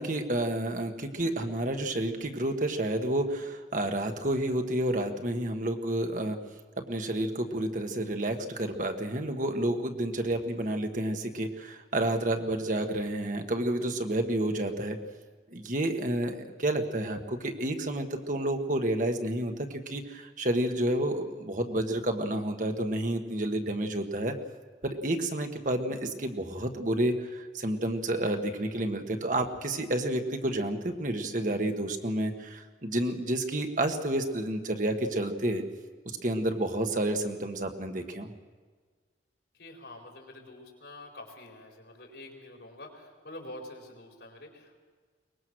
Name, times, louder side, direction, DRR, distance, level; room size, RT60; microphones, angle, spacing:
voice 1, 0.0-6.4 6.8-15.0 15.5-24.4 24.8-35.6 36.0-38.3, right 1 dB, 45° right, 5 dB, 1.5 m, -30 dB
voice 2, 39.5-44.8, left 1 dB, 75° left, 1 dB, 4.6 m, -47 dB
23.0 x 20.5 x 6.3 m, 1.5 s
head